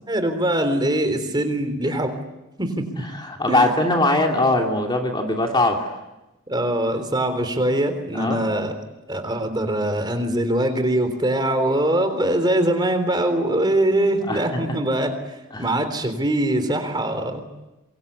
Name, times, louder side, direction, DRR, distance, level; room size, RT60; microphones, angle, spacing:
voice 1, 0.1-2.1 2.6-2.9 3.5-3.7 6.5-8.7 9.1-17.5, right 1 dB, 20° right, 8 dB, 3.6 m, -22 dB
voice 2, 3.0-5.9 8.1-8.4 14.3-14.5 15.5-15.8, left 2 dB, 20° left, 2 dB, 2.9 m, -21 dB
27.0 x 23.0 x 8.4 m, 0.99 s
head